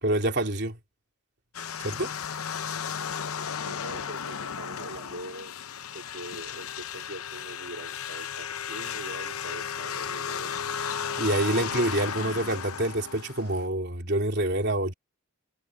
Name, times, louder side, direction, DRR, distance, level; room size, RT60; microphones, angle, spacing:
voice 1, 0.0-0.8 1.8-2.1 11.2-14.9, right 1 dB, 50° right, 3.4 m, -27 dB
sound 1, 1.5-13.7, left 7 dB, 85° left, 0.8 m, -34 dB
voice 2, 3.7-5.6 5.9-10.5, right 1 dB, 75° right, 3.2 m, -43 dB
head